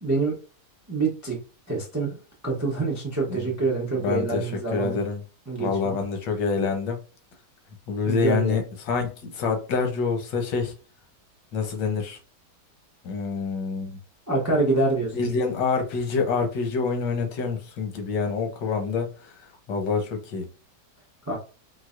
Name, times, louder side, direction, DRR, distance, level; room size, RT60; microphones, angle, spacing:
voice 1, 0.0-0.4 0.9-1.4 1.7-2.2 2.4-5.0 5.5-6.0 8.1-8.6 14.3-15.4 21.3-21.4, right 3 dB, 25° right, 0.3 m, -26 dB
voice 2, 3.9-5.2 5.6-7.0 7.9-10.7 11.5-12.2 13.0-14.0 15.1-20.5, left 5 dB, 90° left, 1.5 m, -27 dB
4.6 x 2.1 x 2.4 m
omnidirectional pair, 1.8 m